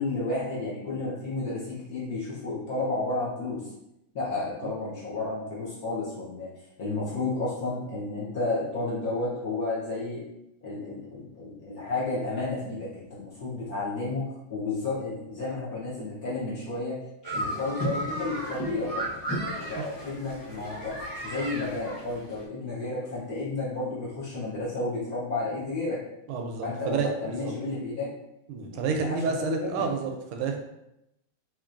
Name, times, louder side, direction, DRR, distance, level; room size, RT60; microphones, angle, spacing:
voice 1, 0.0-3.6 4.1-6.5 6.8-10.2 10.6-14.2 14.5-17.0 17.3-21.0 21.2-26.0 26.6-28.1 28.7-29.8, left 3 dB, 55° left, -7 dB, 1.2 m, -32 dB
sound 1, 17.2-22.4, right 1 dB, 30° left, 0.3 m, -34 dB
voice 2, 26.3-27.5 28.5-30.6, right 5 dB, 85° right, 3 dB, 1.5 m, -30 dB
4.4 x 2.9 x 2.5 m, 0.86 s
omnidirectional pair, 2.4 m